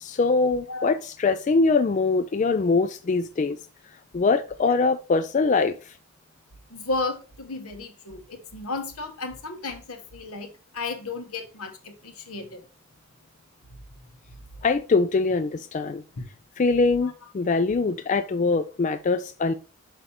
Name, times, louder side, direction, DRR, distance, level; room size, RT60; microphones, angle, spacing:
voice 1, 0.0-3.6 4.1-5.8 14.6-16.0 16.6-19.5, left 4 dB, 35° left, 0.3 m, -23 dB
voice 2, 6.7-12.6 16.2-16.3 17.0-17.1, left 3 dB, 85° left, 1.3 m, -33 dB
5.9 x 5.1 x 4.2 m
head